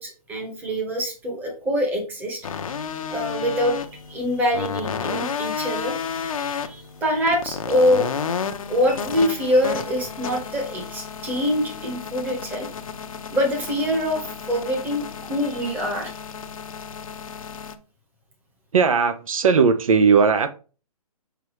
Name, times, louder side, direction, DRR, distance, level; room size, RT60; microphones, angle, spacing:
voice 1, 0.0-2.5 3.1-5.9 6.4-8.1 8.7-12.7 13.3-16.1, equal, 10° right, 1.2 m, -24 dB
sound 1, 2.4-17.7, left 6 dB, 60° left, 0.8 m, -32 dB
voice 2, 18.7-20.5, right 5 dB, 60° right, 0.7 m, -17 dB
6.9 x 4.6 x 3.1 m
hypercardioid pair, 160°, 20 cm